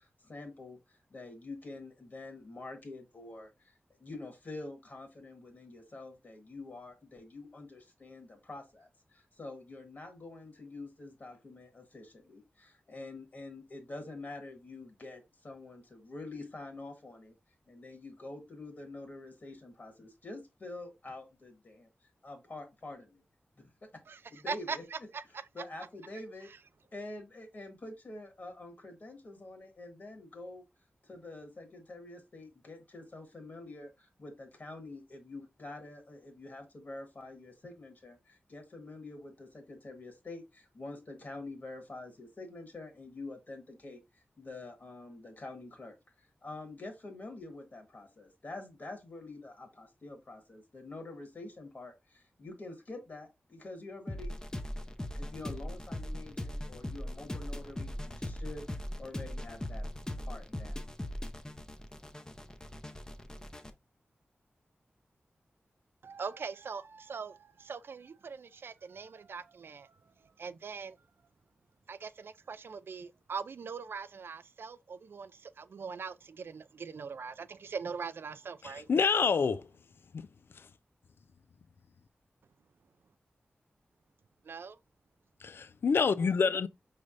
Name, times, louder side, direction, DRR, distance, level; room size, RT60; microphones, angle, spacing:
voice 1, 0.0-17.3 17.7-23.2 23.6-23.7 24.3-24.8 25.5-26.5 26.9-30.6 31.0-54.4 55.1-59.9 60.2-60.9, left 2 dB, 50° left, 1.4 m, -47 dB
voice 2, 24.1-25.5 66.0-71.0 71.9-78.9 84.4-84.8, right 5 dB, 70° right, 0.3 m, -42 dB
sound 1, 54.1-63.7, left 1 dB, 15° left, 0.6 m, -40 dB
voice 3, 78.6-79.7 80.1-80.3 80.5-80.7 85.4-86.7, left 5 dB, 75° left, 0.3 m, -28 dB
5.0 x 3.3 x 2.5 m
wide cardioid pair, 80°, 4 cm